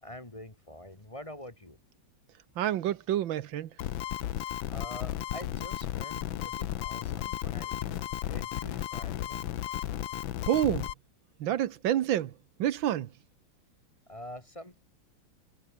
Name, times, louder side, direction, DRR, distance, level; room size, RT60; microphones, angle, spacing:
voice 1, 0.0-1.8 4.7-8.0 8.3-9.5 14.1-14.8, left 1 dB, 15° left, 2.1 m, -46 dB
voice 2, 2.6-3.7 10.5-10.9 11.4-12.3 12.6-13.1, right 11 dB, 80° right, 1.7 m, -28 dB
sound 1, 3.8-10.9, left 12 dB, 85° left, 1.7 m, -34 dB
omnidirectional pair, 2.1 m